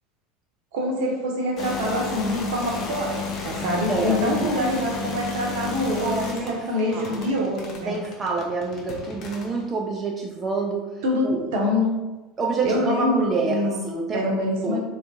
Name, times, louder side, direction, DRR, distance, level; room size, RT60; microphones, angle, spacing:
voice 1, 0.7-8.0 11.0-11.9 12.6-13.7 14.1-14.8, left 1 dB, 60° right, 0 dB, 0.7 m, -25 dB
sound 1, 1.6-9.6, left 3 dB, 45° left, 0.7 m, -33 dB
voice 2, 3.9-4.5 6.0-6.6 6.9-7.2 7.8-10.9 11.2-11.4 12.4-14.2 14.6-14.8, right 3 dB, 25° right, 0 dB, 0.3 m, -27 dB
3.4 x 2.4 x 2.7 m, 1.1 s
figure-of-eight pair, 70°, 0 cm